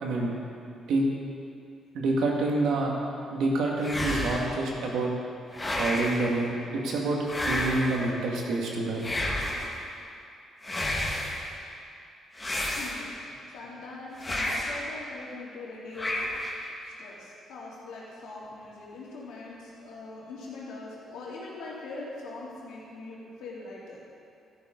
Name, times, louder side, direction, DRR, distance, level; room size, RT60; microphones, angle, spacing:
voice 1, 0.0-0.3 0.9-1.0 1.9-2.9 3.3-5.1 5.8-7.2 7.4-9.0, right 2 dB, 80° right, -1 dB, 2.1 m, -27 dB
sound 1, 3.8-4.6 5.5-6.3 7.2-8.1 9.0-9.8 10.6-11.4 12.4-13.3 14.2-14.9 15.9-16.6, left 1 dB, 20° left, 1.8 m, -31 dB
voice 2, 12.7-16.3 16.8-24.0, left 3 dB, 90° left, -6 dB, 3.1 m, -42 dB
12.5 x 11.5 x 4.0 m, 2.5 s
cardioid pair, 90°, 0 cm